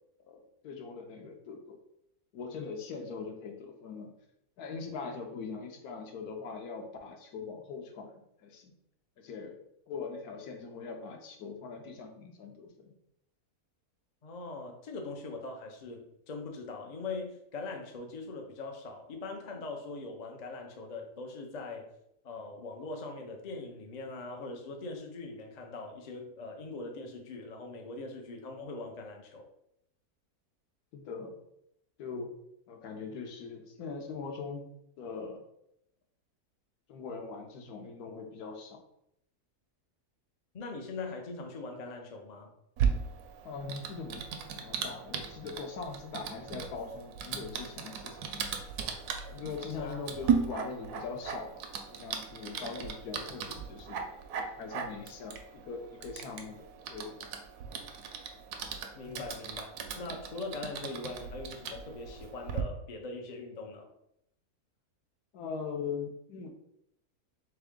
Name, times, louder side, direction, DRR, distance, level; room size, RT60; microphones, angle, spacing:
voice 1, 0.2-1.8 2.3-4.1 4.6-8.7 9.2-9.6 9.9-12.9 30.9-31.3 32.0-32.3 32.7-35.4 36.9-38.8 43.4-44.3 44.6-48.5 49.3-54.1 54.3-57.2 59.0-59.2 65.3-66.5, left 5 dB, 80° left, 4 dB, 1.2 m, -41 dB
voice 2, 14.2-21.9 22.2-29.5 40.5-42.5 49.8-50.1 58.9-63.9, left 3 dB, 60° left, 2 dB, 0.4 m, -41 dB
Typing, 42.8-62.6, right 6 dB, 80° right, 1.1 m, -37 dB
3.5 x 3.4 x 3.6 m, 0.78 s
omnidirectional pair, 1.6 m